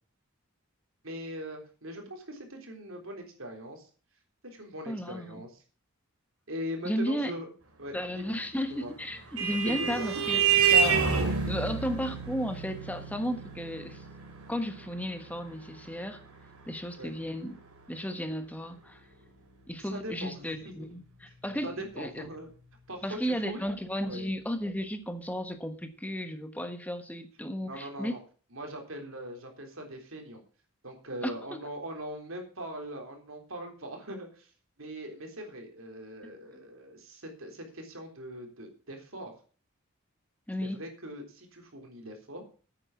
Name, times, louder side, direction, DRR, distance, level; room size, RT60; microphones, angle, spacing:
voice 1, 1.0-3.9 4.4-5.5 6.5-7.5 7.8-8.4 8.7-8.9 9.6-10.2 17.0-17.1 19.8-21.0 21.6-22.5 22.9-23.6 24.0-24.3 27.7-28.2 28.5-30.4 30.8-34.5 34.8-39.3 40.6-42.5, equal, 65° right, 3 dB, 3.6 m, -41 dB
voice 2, 4.9-5.4 6.8-7.3 7.9-14.0 14.5-16.2 16.6-17.6 17.9-19.0 19.7-22.3 23.0-28.2 31.2-31.6 36.2-36.3 40.5-40.8, equal, 5° left, 8 dB, 1.3 m, -34 dB
Vehicle horn car horn honking, 8.7-17.7, right 6 dB, 85° right, 2.9 m, -29 dB
9.1 x 8.8 x 7.1 m, 0.39 s
head